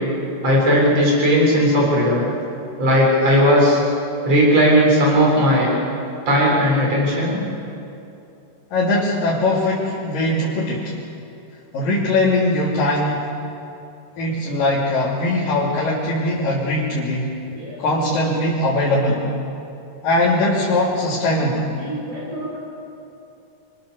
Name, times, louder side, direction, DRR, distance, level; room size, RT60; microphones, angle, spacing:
voice 1, 0.4-2.3 2.8-3.8 4.2-5.7 6.3-7.4 17.5-17.8 21.8-22.6, equal, 45° right, -3 dB, 8.1 m, -17 dB
voice 2, 8.7-10.9 11.7-13.3 14.2-17.4 17.8-19.3 20.0-21.7, left 1 dB, 75° left, -6 dB, 4.9 m, -20 dB
28.5 x 25.0 x 7.0 m, 2.7 s
omnidirectional pair, 3.9 m